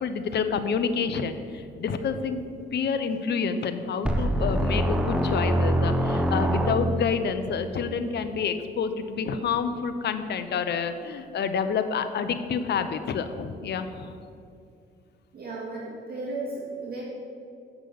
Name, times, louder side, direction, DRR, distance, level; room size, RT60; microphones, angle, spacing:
voice 1, 0.0-2.4 2.7-14.1, left 6 dB, 60° left, 9 dB, 0.8 m, -28 dB
sound 1, 4.1-7.3, equal, 5° right, 0.7 m, -24 dB
voice 2, 15.3-17.0, right 2 dB, 50° right, -5 dB, 2.2 m, -34 dB
8.1 x 6.0 x 6.8 m, 2.4 s
cardioid pair, 90°, 20 cm